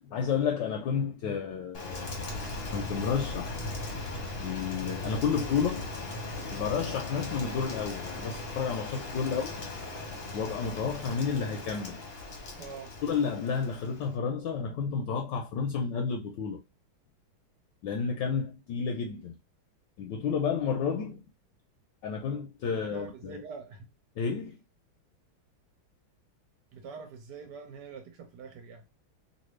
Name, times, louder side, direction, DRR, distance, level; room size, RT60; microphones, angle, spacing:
voice 1, 0.1-2.3 2.7-3.6 4.4-5.9 6.5-9.5 10.3-12.0 13.0-16.6 17.8-19.3 20.0-21.2 22.0-23.4 24.2-24.6, left 6 dB, 75° left, 1.1 m, -31 dB
Rain, 1.7-14.2, left 2 dB, 45° left, 0.8 m, -38 dB
voice 2, 12.6-12.9 22.7-23.9 26.7-28.8, right 5 dB, 60° right, 1.3 m, -45 dB
3.2 x 2.6 x 3.1 m
omnidirectional pair, 2.3 m